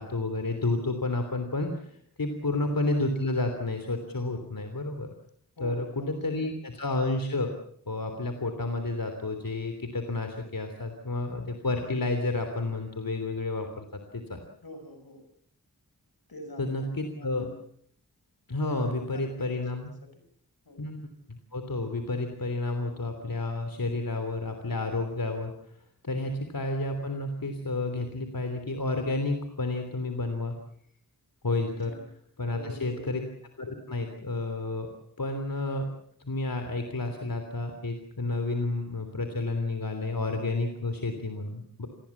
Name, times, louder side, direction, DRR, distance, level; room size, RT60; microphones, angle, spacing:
voice 1, 0.0-5.1 5.6-7.5 7.9-14.4 16.6-17.5 18.5-19.9 20.8-25.5 26.0-30.6 31.4-31.9 32.4-33.2 33.6-34.9 35.2-35.9 36.2-41.9, left 2 dB, 70° left, 6 dB, 3.3 m, -31 dB
voice 2, 2.3-2.8 5.6-6.6 14.6-15.2 16.3-17.6 18.6-20.2 20.6-20.8 31.8-32.1 32.5-33.2, left 1 dB, 85° left, 8 dB, 6.1 m, -45 dB
28.0 x 20.5 x 7.3 m, 0.63 s
wide cardioid pair, 65°, 35 cm